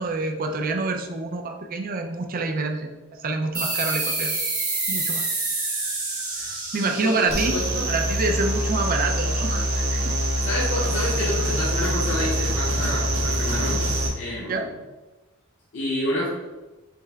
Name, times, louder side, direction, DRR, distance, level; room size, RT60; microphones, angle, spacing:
voice 1, 0.0-4.4 4.9-5.2 6.4-7.5 7.9-10.1 14.4-14.7, right 3 dB, 45° right, 4 dB, 0.5 m, -27 dB
sound 1, 3.5-8.7, right 3 dB, 20° right, 0.9 m, -28 dB
voice 2, 7.0-7.8 10.4-13.8 14.1-14.8 15.7-16.3, left 1 dB, 65° left, -7 dB, 0.9 m, -29 dB
sound 2, 7.3-14.1, equal, 75° right, 1.0 m, -24 dB
5.4 x 2.1 x 3.4 m, 1.1 s
head